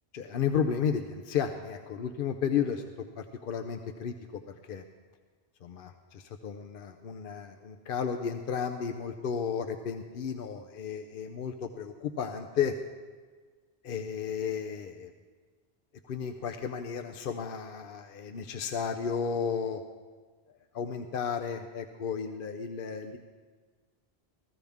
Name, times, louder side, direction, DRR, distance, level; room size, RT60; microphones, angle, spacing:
voice 1, 0.1-2.8 3.2-4.8 5.6-12.7 13.8-15.1 16.1-19.8 20.7-23.2, left 7 dB, 60° left, 6 dB, 0.7 m, -33 dB
15.0 x 14.5 x 3.5 m, 1.5 s
omnidirectional pair, 1.1 m